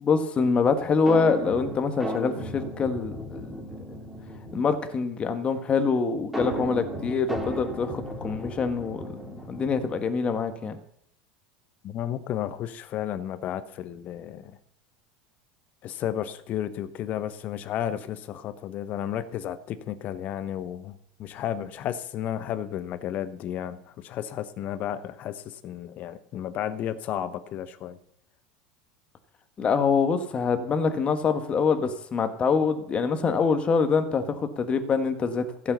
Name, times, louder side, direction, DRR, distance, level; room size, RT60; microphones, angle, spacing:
voice 1, 0.0-3.6 4.5-10.8 29.6-35.7, left 5 dB, 30° left, 8 dB, 1.6 m, -25 dB
sound 1, 1.1-4.8 6.3-9.9, right 1 dB, 5° right, 3.2 m, -35 dB
voice 2, 11.8-14.6 15.8-28.0, left 10 dB, 45° left, 12 dB, 1.1 m, -33 dB
15.5 x 5.6 x 6.9 m, 0.75 s
hypercardioid pair, 80°, 4 cm